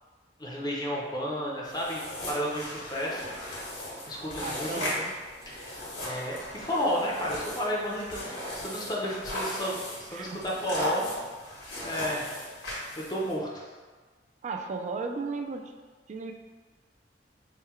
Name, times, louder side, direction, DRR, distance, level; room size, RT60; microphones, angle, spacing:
voice 1, 0.4-3.2 4.1-4.8 5.5-5.7 6.0-11.1 11.8-12.3 13.1-13.6, equal, 25° left, -3 dB, 0.6 m, -32 dB
sound 1, 1.6-13.3, left 1 dB, 80° left, 1.5 m, -37 dB
voice 2, 4.4-5.1 10.1-10.4 14.4-15.7 16.1-16.3, right 4 dB, 40° right, 4 dB, 0.3 m, -35 dB
3.6 x 2.2 x 4.3 m, 1.4 s
head